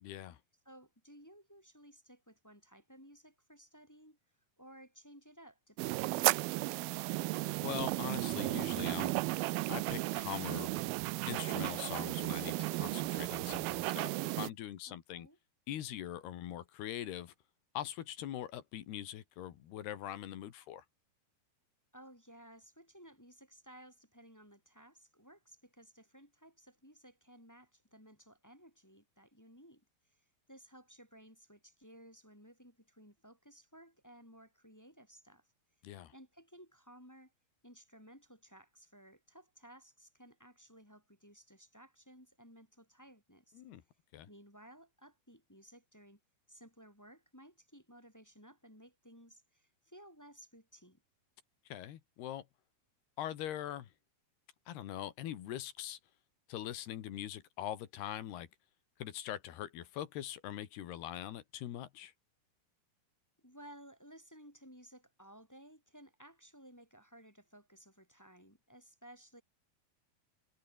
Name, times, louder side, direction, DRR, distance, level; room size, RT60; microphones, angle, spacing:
voice 1, 0.0-0.4 7.6-9.1 9.7-10.8 11.3-14.1 14.4-15.3 15.7-17.3 17.8-20.9 35.8-36.1 43.6-43.8 44.1-44.3 51.7-52.5 53.2-53.9 54.7-56.0 56.5-58.5 59.0-62.1, left 12 dB, 90° left, 3.9 m, -42 dB
voice 2, 0.6-6.9 14.9-15.4 21.9-35.5 36.1-37.3 37.6-43.6 44.3-46.2 46.5-51.0 63.4-69.4, equal, 5° left, 2.0 m, -58 dB
sound 1, 5.8-14.5, right 21 dB, 85° right, 2.4 m, -34 dB
omnidirectional pair, 4.5 m